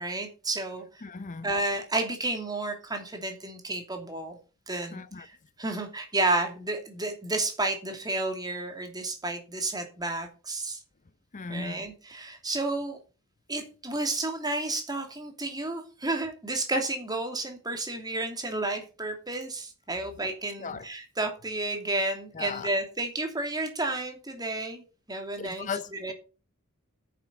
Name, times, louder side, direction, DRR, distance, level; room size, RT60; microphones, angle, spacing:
voice 1, 0.0-1.0 1.4-4.4 4.7-10.8 11.5-13.0 13.5-26.1, right 2 dB, 20° right, 2.8 m, -31 dB
voice 2, 1.0-1.5 4.9-5.3 11.3-11.8 20.6-20.9 22.3-22.7 25.4-26.1, left 5 dB, 35° left, 0.6 m, -37 dB
9.5 x 7.4 x 6.9 m
head